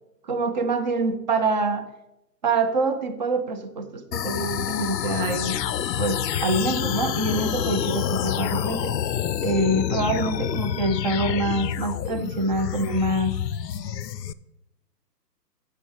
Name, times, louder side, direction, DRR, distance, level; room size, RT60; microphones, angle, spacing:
voice 1, 0.2-1.8 2.4-5.6 6.0-9.0 9.4-13.4, right 2 dB, 30° right, 10 dB, 0.6 m, -25 dB
sound 1, 4.1-14.3, left 9 dB, 80° left, 0.6 m, -28 dB
8.3 x 6.8 x 4.6 m, 0.90 s
hypercardioid pair, 140°, 50 cm